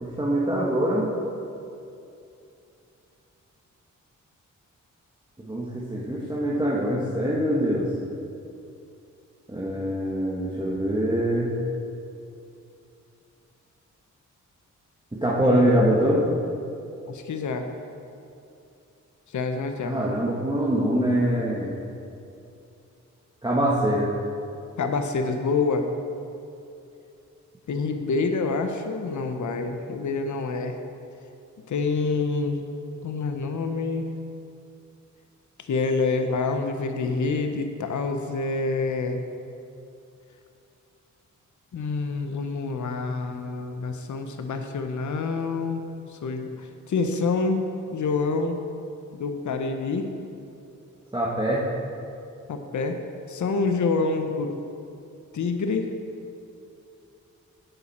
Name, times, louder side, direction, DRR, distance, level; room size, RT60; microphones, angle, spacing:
voice 1, 0.0-1.1 5.4-7.9 9.5-11.5 15.1-16.2 19.8-21.7 23.4-24.1 51.1-51.6, right 1 dB, 15° right, -6 dB, 1.6 m, -24 dB
voice 2, 17.1-17.6 19.3-20.0 24.8-25.9 27.7-30.8 31.7-32.6 33.0-34.1 35.6-39.2 41.7-45.8 46.1-47.6 47.9-48.6 49.1-50.1 52.5-53.0 53.3-54.5 55.3-55.9, left 4 dB, 65° left, 6 dB, 0.8 m, -27 dB
11.0 x 8.5 x 4.3 m, 2.6 s
cardioid pair, 65°, 31 cm